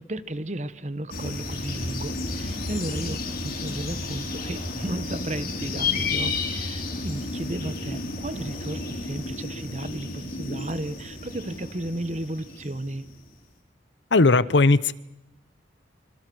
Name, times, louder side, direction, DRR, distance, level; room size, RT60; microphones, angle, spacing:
voice 1, 0.0-13.1, right 1 dB, 40° right, 1.1 m, -34 dB
sound 1, 1.1-13.2, left 3 dB, 50° left, 4.8 m, -32 dB
voice 2, 14.1-14.9, left 3 dB, 75° left, 0.9 m, -18 dB
26.0 x 26.0 x 6.2 m
head